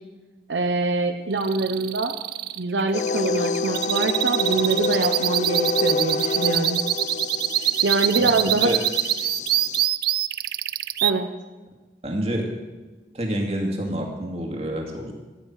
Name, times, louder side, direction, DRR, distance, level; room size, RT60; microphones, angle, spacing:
voice 1, 0.5-2.2 2.6-6.8 7.8-8.7 11.0-11.3, right 3 dB, 80° right, 6 dB, 0.8 m, -24 dB
sound 1, 1.4-11.1, right 14 dB, 55° right, 0.4 m, -24 dB
sound 2, 2.9-9.9, left 4 dB, 40° left, 0.4 m, -28 dB
voice 2, 8.1-8.8 12.0-12.5 13.1-15.1, right 1 dB, 35° right, 1 dB, 2.3 m, -28 dB
14.0 x 10.0 x 6.6 m, 1.2 s
head